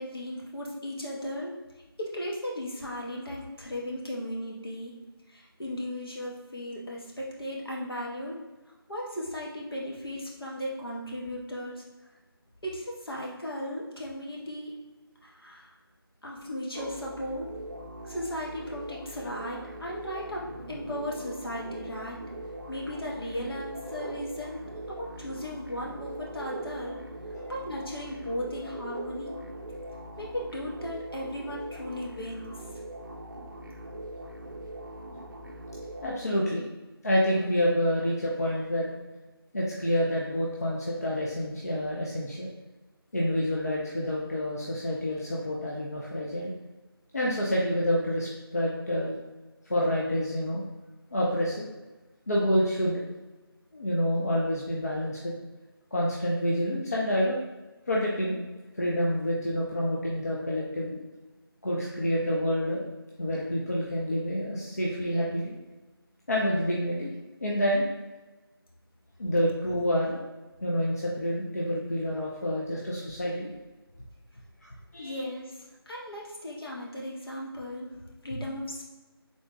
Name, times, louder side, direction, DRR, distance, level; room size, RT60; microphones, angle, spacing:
voice 1, 0.0-1.6 2.0-4.9 5.3-8.4 8.9-11.8 12.6-14.7 15.2-15.7 16.2-17.5 18.0-22.2 22.7-27.0 27.5-29.4 30.2-32.5 75.0-78.8, left 1 dB, 65° left, -3 dB, 1.1 m, -36 dB
sound 1, 16.7-36.1, right 1 dB, 55° right, 0.5 m, -41 dB
voice 2, 36.0-36.6 37.0-38.9 39.5-42.5 43.1-46.5 47.1-49.1 49.7-50.6 51.1-51.7 52.3-53.0 53.7-55.3 55.9-57.4 57.9-58.4 58.7-61.0 61.6-62.8 63.2-65.5 66.3-67.1 67.4-67.9 69.2-70.2 70.6-73.5 74.6-75.2, equal, 40° left, -4 dB, 0.5 m, -28 dB
3.6 x 2.2 x 3.7 m, 1.2 s
figure-of-eight pair, 170°, 13 cm